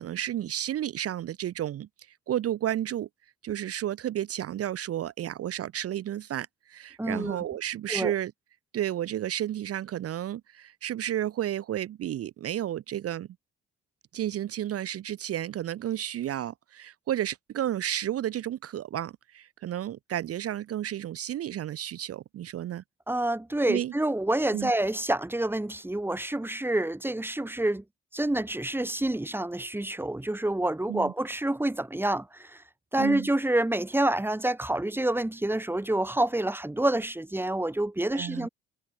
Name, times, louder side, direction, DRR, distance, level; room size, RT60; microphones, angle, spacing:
voice 1, 0.0-1.9 2.3-3.1 3.4-8.3 8.7-13.3 14.1-22.8 23.7-23.9 24.5-24.7 30.9-31.1 33.0-33.3 38.1-38.5, right 11 dB, 50° right, 0.8 m, -32 dB
voice 2, 7.0-7.4 7.9-8.1 23.1-27.8 28.1-32.6 32.9-38.5, right 1 dB, 5° right, 2.1 m, -28 dB
supercardioid pair, 75°, 30 cm